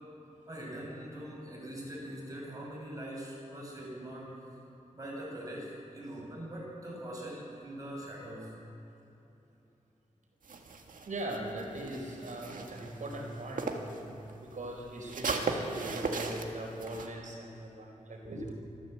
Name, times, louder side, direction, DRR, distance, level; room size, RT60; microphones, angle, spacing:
voice 1, 0.5-4.4 4.9-8.5, right 1 dB, 25° right, -3 dB, 6.6 m, -42 dB
sound 1, 10.4-14.0 14.3-17.1, right 4 dB, 85° right, 1.8 m, -37 dB
voice 2, 11.1-18.5, right 1 dB, 70° right, 0 dB, 4.6 m, -40 dB
25.5 x 14.0 x 8.0 m, 2.9 s
wide cardioid pair, 125°, 13 cm